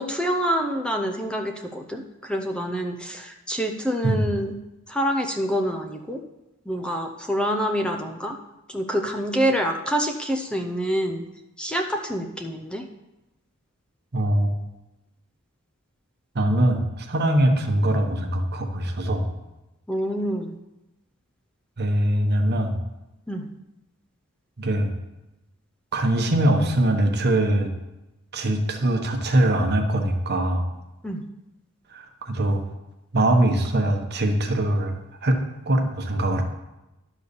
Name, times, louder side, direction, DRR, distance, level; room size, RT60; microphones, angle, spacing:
voice 1, 0.0-4.5 4.9-6.2 6.7-8.4 8.7-11.2 11.6-12.9 19.9-20.5 23.3-23.5 31.0-31.2, equal, 5° left, 3 dB, 0.5 m, -26 dB
voice 2, 14.1-14.5 16.3-19.3 21.8-22.8 24.6-24.9 25.9-27.7 28.3-30.7 31.9-32.6 33.1-35.4 35.7-36.4, right 1 dB, 50° right, 4 dB, 1.1 m, -22 dB
11.0 x 4.1 x 6.8 m, 0.98 s
head